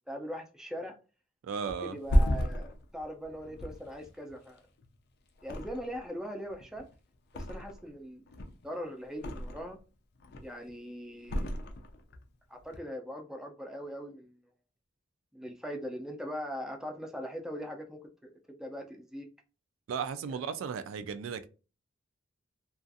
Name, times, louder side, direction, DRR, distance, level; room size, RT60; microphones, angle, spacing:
voice 1, 0.1-1.0 1.8-4.6 5.4-6.9 7.3-9.8 10.4-11.7 12.5-14.4 15.3-19.3, equal, 5° right, 0.4 m, -41 dB
voice 2, 1.4-2.0 19.9-21.5, right 6 dB, 70° right, 0.3 m, -35 dB
Thump thud, 1.7-5.0 5.4-6.2 6.5-7.9 8.3-9.8 10.2-10.7 11.2-12.2 12.6-12.8, equal, 55° left, 0.4 m, -32 dB
2.4 x 2.3 x 2.5 m
head